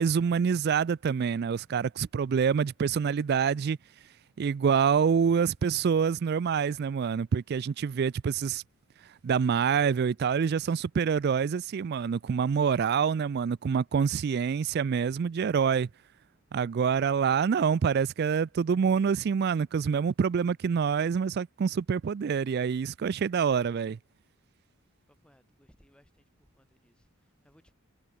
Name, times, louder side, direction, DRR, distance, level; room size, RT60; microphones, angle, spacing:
voice 1, 0.0-3.8 4.4-8.6 9.2-15.9 16.5-24.0, right 6 dB, 45° right, 0.3 m, -26 dB
voice 2, 25.1-27.7, equal, 5° left, 6.0 m, -64 dB
head